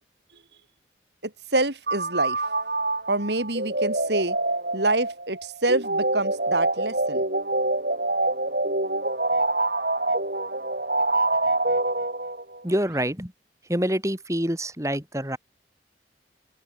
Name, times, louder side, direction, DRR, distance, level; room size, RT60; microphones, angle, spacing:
voice 1, 1.2-2.4 3.1-4.4 4.7-7.2, right 2 dB, 75° right, 5.6 m, -26 dB
sound 1, 1.9-12.6, right 2 dB, 55° right, 7.7 m, -26 dB
voice 2, 12.6-13.3 13.7-15.4, equal, 15° right, 7.0 m, -26 dB
open air
head